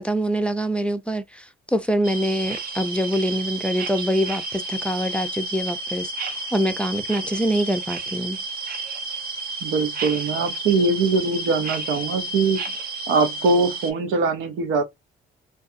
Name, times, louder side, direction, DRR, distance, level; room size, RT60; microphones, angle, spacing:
voice 1, 0.0-8.4, equal, 5° left, 0.5 m, -25 dB
sound 1, 2.0-13.9, right 2 dB, 50° right, 0.7 m, -31 dB
voice 2, 9.6-12.6 13.1-14.8, right 3 dB, 90° right, 0.7 m, -22 dB
2.5 x 2.4 x 2.5 m
cardioid pair, 90°, 20 cm